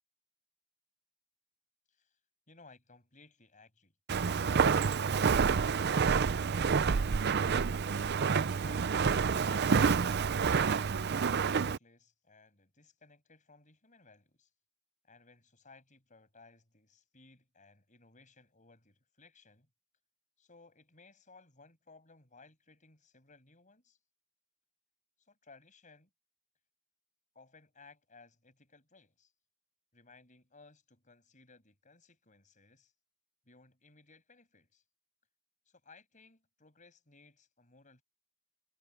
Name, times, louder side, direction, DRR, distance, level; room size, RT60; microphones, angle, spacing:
voice 1, 1.9-2.2 2.5-3.9 4.6-7.4 8.0-8.9 9.2-14.5 15.0-19.7 20.4-24.0 25.2-26.1 27.3-29.3 29.9-32.9 33.4-34.8 35.7-38.0, left 3 dB, 35° left, 6.2 m, -60 dB
Walk footsteps, 4.1-11.8, right 5 dB, 50° right, 0.5 m, -28 dB
head